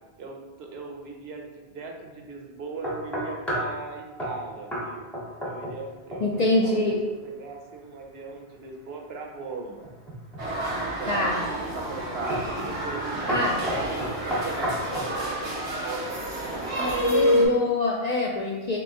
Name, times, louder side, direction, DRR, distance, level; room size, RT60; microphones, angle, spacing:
voice 1, 0.2-5.1 5.5-9.9 10.7-17.0, right 3 dB, 70° right, 2 dB, 0.8 m, -38 dB
sound 1, 2.8-3.8 4.2-4.4 4.7-4.9 5.1-5.8 6.1-6.5 9.8-10.5 11.1-11.5 12.3-12.5 12.8-13.0 13.3-15.1, equal, ahead, 0.7 m, -31 dB
voice 2, 6.2-7.0 11.1-11.4 13.3-13.6 16.8-18.8, left 2 dB, 60° left, -3 dB, 0.4 m, -25 dB
sound 2, 10.4-17.5, equal, 85° right, 1.2 m, -28 dB
3.4 x 2.9 x 3.6 m, 1.2 s
omnidirectional pair, 1.1 m